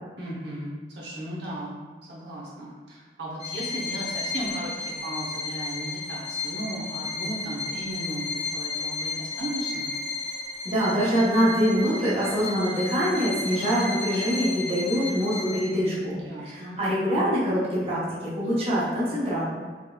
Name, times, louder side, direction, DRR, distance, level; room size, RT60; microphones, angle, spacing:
voice 1, 0.2-1.7 2.1-9.9 16.2-16.8, right 1 dB, 75° right, -6 dB, 1.0 m, -36 dB
Bowed string instrument, 3.4-15.9, left 3 dB, 35° left, 0.7 m, -33 dB
voice 2, 10.6-19.4, equal, 35° right, -8 dB, 1.0 m, -24 dB
4.5 x 3.1 x 2.3 m, 1.5 s
head